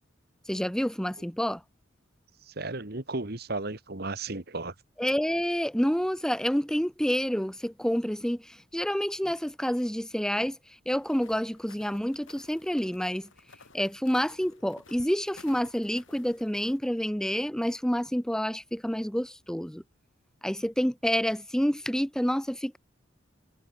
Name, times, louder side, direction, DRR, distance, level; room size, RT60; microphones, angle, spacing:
voice 1, 0.5-1.6 5.0-10.6 10.9-13.3 13.7-19.8 20.4-22.8, equal, 5° left, 0.8 m, -28 dB
voice 2, 2.5-4.7, right 2 dB, 55° right, 1.9 m, -34 dB
sound 1, 10.9-16.8, left 4 dB, 85° left, 7.0 m, -55 dB
head